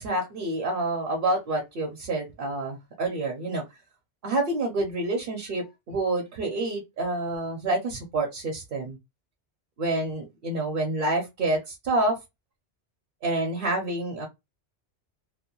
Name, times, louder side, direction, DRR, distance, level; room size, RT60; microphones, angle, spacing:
voice 1, 0.0-3.6 4.2-9.0 9.8-12.2 13.2-14.3, right 2 dB, 55° right, 0.8 m, -28 dB
2.2 x 2.1 x 2.9 m
omnidirectional pair, 1.2 m